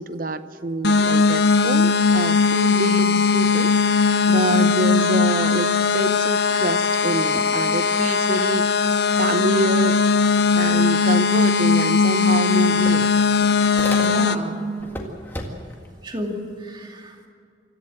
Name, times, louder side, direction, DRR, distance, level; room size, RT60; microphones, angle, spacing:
voice 1, 0.0-8.9 9.2-10.0 10.6-13.1, right 2 dB, 50° right, 12 dB, 0.8 m, -27 dB
sound 1, 0.8-14.4, left 5 dB, 60° left, 0.7 m, -19 dB
voice 2, 2.8-3.2 4.5-4.6 7.3-7.4 13.9-14.6 16.0-17.3, equal, 25° right, 1 dB, 2.4 m, -32 dB
sound 2, 11.8-11.9 12.2-14.5 14.8-15.9, left 1 dB, 10° left, 1.9 m, -35 dB
25.5 x 14.5 x 7.8 m, 2.2 s
head